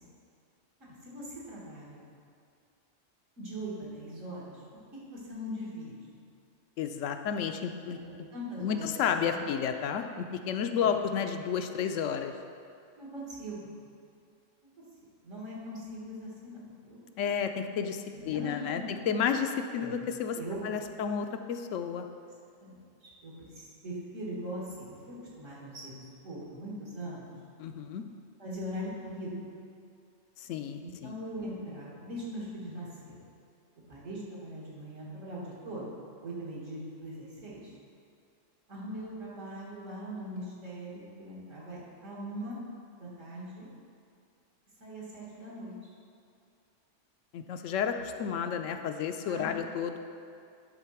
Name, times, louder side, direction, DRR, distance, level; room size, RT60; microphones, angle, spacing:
voice 1, 1.0-2.0 3.4-4.6 5.1-6.2 8.0-9.5 10.8-11.0 13.0-13.7 15.2-17.0 18.1-18.9 19.8-19.9 20.3-20.9 22.6-27.3 28.4-29.5 30.8-33.2 33.9-35.9 36.2-37.7 38.7-42.6 43.0-43.7 44.8-45.7 48.5-48.6 49.2-49.5, equal, 85° right, -6 dB, 2.4 m, -41 dB
voice 2, 6.8-8.0 8.6-12.3 17.2-20.4 20.6-22.0 27.6-28.0 30.4-31.1 47.3-50.0, left 7 dB, 80° left, 7 dB, 0.9 m, -31 dB
10.5 x 3.9 x 5.9 m, 2.4 s
omnidirectional pair, 1.3 m